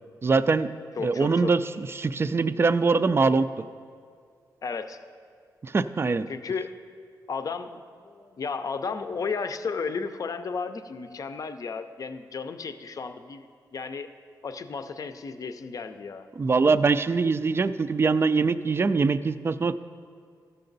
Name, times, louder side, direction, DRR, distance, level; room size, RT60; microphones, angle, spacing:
voice 1, 0.2-0.7 1.0-3.5 5.6-6.3 16.4-19.7, right 4 dB, 35° right, 13 dB, 0.4 m, -23 dB
voice 2, 1.0-1.5 4.6-5.0 6.3-6.7 7.3-14.1 14.4-16.3, left 5 dB, 50° left, 9 dB, 0.6 m, -33 dB
14.5 x 6.7 x 4.0 m, 2.2 s
cardioid pair, 75°, 8 cm